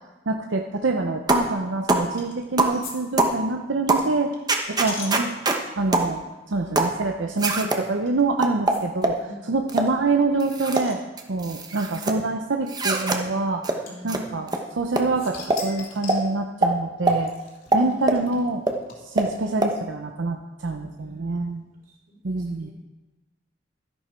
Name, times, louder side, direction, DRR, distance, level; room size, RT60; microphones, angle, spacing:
voice 1, 0.3-4.3 4.8-5.3 5.8-9.2 9.5-11.0 11.3-17.3 17.7-18.6 19.0-21.6 22.2-22.7, right 3 dB, 80° right, 3 dB, 0.7 m, -26 dB
sound 1, 1.3-1.5 1.9-2.1 2.6-2.8 3.2-3.4 3.9-4.1 4.5-5.6 5.9-6.1 6.8-7.0 7.4-7.8 8.4-9.2 9.7-9.9 10.4-10.9 11.2-12.2 12.7-13.2 13.6-13.8 14.1-14.2 14.5-14.6 15.0-15.1 15.5-15.6 16.1-16.2 16.6-16.7 17.1-17.2 17.7-18.2 18.7-18.8 19.2-19.3 19.6-19.7, right 2 dB, 20° right, 1.0 m, -22 dB
sound 2, 2.2-2.5 2.8-2.9 3.2-5.9 6.5-6.7 6.9-7.0 8.1-8.2 8.7-8.8 9.1-9.2 9.4-9.5 9.9-11.5 12.4-12.5 13.9-14.9 15.2-16.3 17.1-19.3, left 4 dB, 55° left, 3.1 m, -40 dB
voice 2, 6.5-7.0 9.2-9.5 13.8-14.5 17.0-17.2 17.7-17.9 20.7-21.4 21.9-22.7, right 1 dB, 50° right, -2 dB, 4.2 m, -45 dB
12.5 x 11.0 x 4.5 m, 1.1 s
head